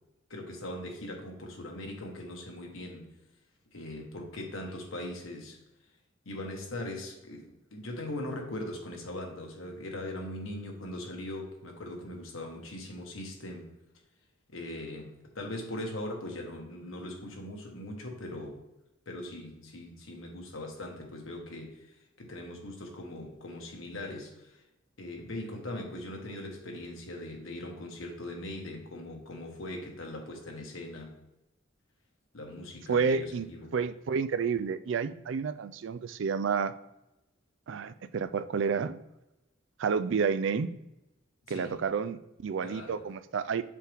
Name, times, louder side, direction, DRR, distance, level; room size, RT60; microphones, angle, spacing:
voice 1, 0.3-3.1 3.7-5.6 6.2-13.7 14.5-18.6 19.1-24.6 25.0-31.1 32.3-33.7 41.5-41.8 42.6-43.1, left 1 dB, 85° left, 1 dB, 1.4 m, -40 dB
voice 2, 32.9-33.5 33.7-36.7 37.7-39.0 39.8-40.7 41.5-43.6, right 5 dB, 65° right, 13 dB, 0.4 m, -30 dB
6.9 x 4.6 x 3.5 m, 0.92 s
head